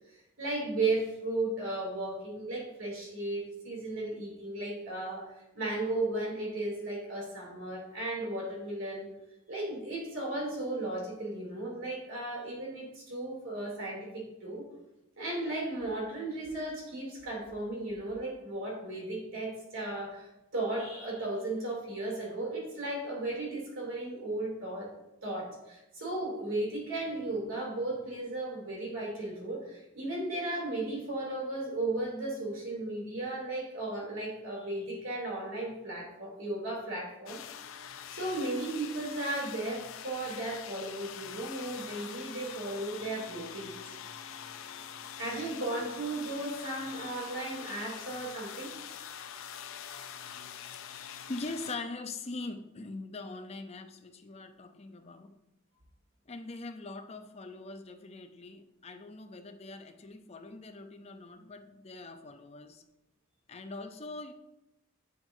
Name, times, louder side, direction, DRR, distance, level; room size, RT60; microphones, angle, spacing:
voice 1, 0.4-9.1 9.5-14.7 15.2-24.9 25.2-37.4 38.1-43.7 45.2-48.7, right 2 dB, 75° right, -2 dB, 2.7 m, -35 dB
sound 1, 37.3-51.8, left 8 dB, 75° left, 0.5 m, -44 dB
voice 2, 51.3-55.4 56.3-62.8 63.5-64.3, left 3 dB, 30° left, 8 dB, 0.5 m, -42 dB
7.5 x 7.4 x 2.6 m, 0.90 s
head